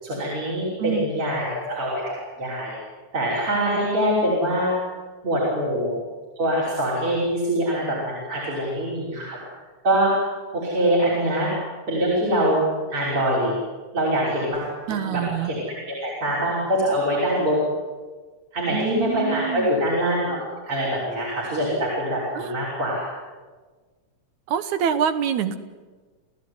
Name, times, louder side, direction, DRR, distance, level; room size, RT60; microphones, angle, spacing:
voice 1, 0.0-2.7 3.1-4.7 5.2-6.0 6.4-9.4 9.8-10.1 10.5-11.5 11.9-12.6 12.9-13.5 13.9-14.7 15.1-15.6 16.0-17.7 18.5-23.0, equal, 45° right, -6 dB, 6.8 m, -24 dB
voice 2, 14.9-15.5 18.7-19.7 22.3-22.5 24.5-25.6, right 8 dB, 70° right, 11 dB, 2.5 m, -25 dB
29.5 x 16.5 x 9.8 m, 1.4 s
omnidirectional pair, 3.6 m